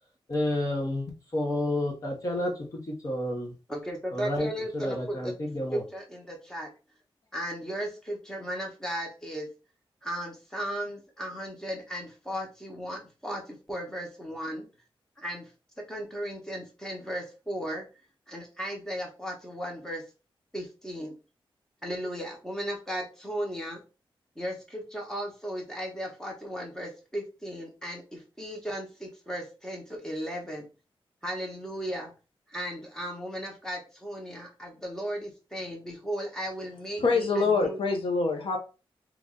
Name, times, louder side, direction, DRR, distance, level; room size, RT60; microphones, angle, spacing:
voice 1, 0.3-3.5 4.1-4.5 4.7-5.8, left 1 dB, 35° left, 0.9 m, -30 dB
voice 2, 3.7-5.3 5.7-6.7 7.3-9.5 10.0-14.7 15.2-15.5 15.8-17.9 18.3-20.0 20.5-21.1 21.8-23.8 24.4-30.7 31.2-32.1 32.5-37.8, equal, 5° left, 1.0 m, -36 dB
voice 3, 37.0-38.6, left 4 dB, 70° left, 0.8 m, -25 dB
3.0 x 2.5 x 3.7 m
wide cardioid pair, 160°, 9 cm